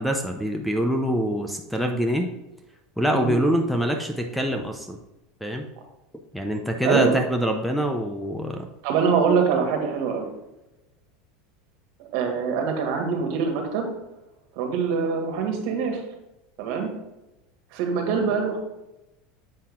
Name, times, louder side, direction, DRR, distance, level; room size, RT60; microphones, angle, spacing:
voice 1, 0.0-2.3 3.0-5.0 5.4-5.7 6.3-8.7, equal, ahead, 4 dB, 0.7 m, -25 dB
voice 2, 6.8-7.1 8.8-10.3 12.1-13.9 14.6-16.0 16.6-16.9 17.7-18.6, right 6 dB, 65° right, 3 dB, 1.9 m, -24 dB
7.7 x 5.6 x 3.7 m, 0.96 s
supercardioid pair, 135°, 0 cm